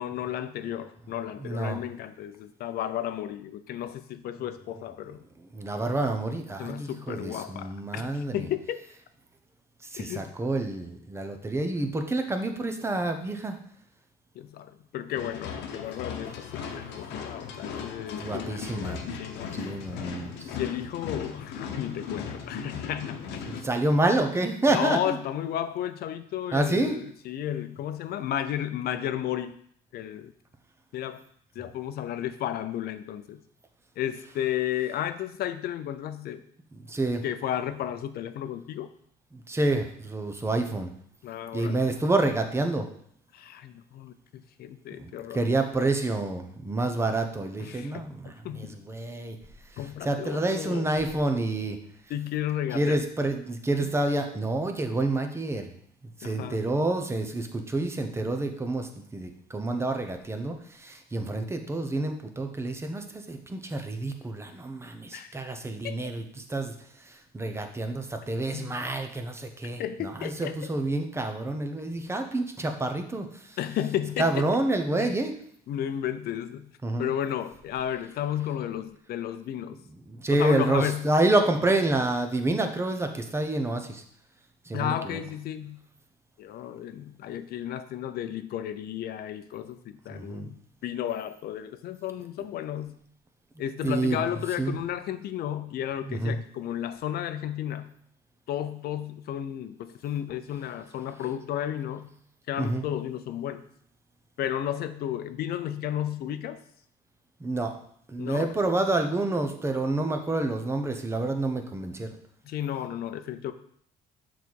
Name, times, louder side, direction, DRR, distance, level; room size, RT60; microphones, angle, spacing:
voice 1, 0.0-5.2 6.6-8.8 10.0-10.3 14.3-19.8 20.5-23.5 24.7-29.6 29.9-30.3 30.9-31.2 31.5-33.4 34.0-36.4 37.2-38.9 41.2-41.8 43.3-45.5 47.6-48.8 49.8-50.9 52.1-53.0 56.2-56.6 65.1-65.4 65.8-66.0 68.5-68.9 69.8-70.6 73.6-74.5 75.0-75.2 75.7-76.7 77.0-79.8 80.3-81.1 84.7-85.8 86.4-92.9 93.6-97.9 98.5-102.1 102.5-103.6 104.4-106.6 108.2-108.5 112.4-113.5, left 11 dB, 65° left, 10 dB, 0.6 m, -33 dB
voice 2, 1.4-1.8 5.5-8.4 9.9-13.6 18.2-19.1 19.5-20.3 23.5-25.2 26.5-27.0 36.9-37.2 39.3-40.9 41.5-42.8 45.0-49.4 50.0-51.8 52.7-55.7 56.2-66.2 66.5-66.7 67.3-73.3 74.2-75.3 76.8-77.1 80.1-84.0 84.7-85.2 90.1-90.5 93.8-94.2 94.6-94.7 96.1-96.4 102.6-102.8 107.4-107.7 108.1-112.1, right 2 dB, 15° right, 5 dB, 0.9 m, -28 dB
sound 1, 15.1-23.6, left 6 dB, 85° left, 1.0 m, -37 dB
6.8 x 4.1 x 4.7 m, 0.64 s
cardioid pair, 110°, 17 cm